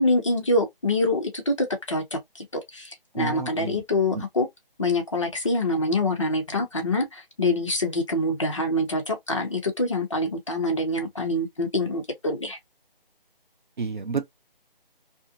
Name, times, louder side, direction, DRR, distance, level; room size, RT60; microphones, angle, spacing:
voice 1, 0.0-4.5 4.8-12.6, left 1 dB, 35° left, 0.7 m, -25 dB
voice 2, 3.1-3.8 4.1-4.2 13.8-14.3, right 4 dB, 55° right, 0.7 m, -30 dB
2.9 x 2.5 x 2.6 m
figure-of-eight pair, 170°, 29 cm